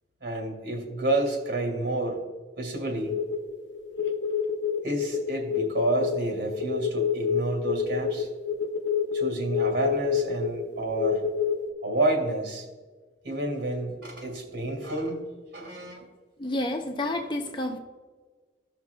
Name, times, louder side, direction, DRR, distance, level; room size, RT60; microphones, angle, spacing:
voice 1, 0.2-2.2 2.6-3.1 4.8-8.3 9.1-11.2 11.8-12.7 13.2-15.2 15.5-16.1, right 1 dB, 80° right, 2 dB, 2.4 m, -29 dB
sound 1, 3.0-11.7, left 6 dB, 80° left, 0.7 m, -28 dB
voice 2, 16.4-17.8, left 1 dB, 25° left, 3 dB, 0.7 m, -29 dB
15.0 x 5.9 x 2.3 m, 1.4 s
head